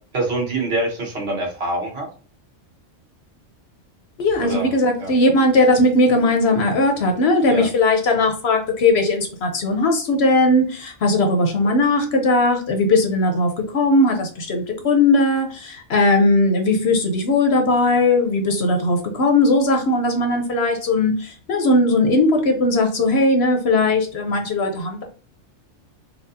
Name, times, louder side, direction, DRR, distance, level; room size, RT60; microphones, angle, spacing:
voice 1, 0.1-2.1 4.4-4.7 5.0-5.1 7.5-7.7, right 2 dB, 55° right, -1 dB, 1.3 m, -25 dB
voice 2, 4.2-25.0, left 2 dB, 60° left, 4 dB, 0.9 m, -18 dB
4.3 x 2.3 x 2.6 m, 0.40 s
omnidirectional pair, 1.3 m